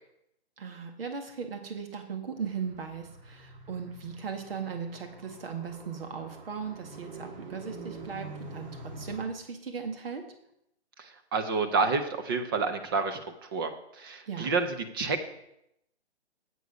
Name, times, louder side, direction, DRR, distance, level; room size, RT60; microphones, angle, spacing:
voice 1, 0.6-10.2 14.3-14.5, right 6 dB, 60° right, 5 dB, 1.9 m, -38 dB
Car, 2.4-9.3, right 2 dB, 40° right, 1.8 m, -46 dB
voice 2, 11.3-13.2 13.5-13.7 14.0-14.7 14.9-15.2, right 4 dB, 20° right, 7 dB, 0.7 m, -28 dB
9.2 x 8.3 x 5.2 m, 0.78 s
hypercardioid pair, 150°, 33 cm